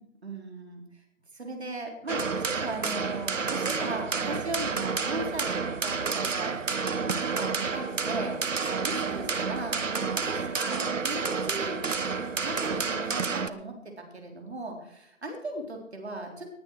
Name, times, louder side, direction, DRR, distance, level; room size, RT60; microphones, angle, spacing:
voice 1, 0.2-1.0 1.3-5.5 5.8-6.6 7.0-8.4 8.8-11.8 12.4-16.5, right 2 dB, 55° right, 2 dB, 4.2 m, -38 dB
sound 1, 2.1-13.5, right 5 dB, 70° right, 1.1 m, -30 dB
19.0 x 9.6 x 4.8 m, 0.78 s
figure-of-eight pair, 165°, 39 cm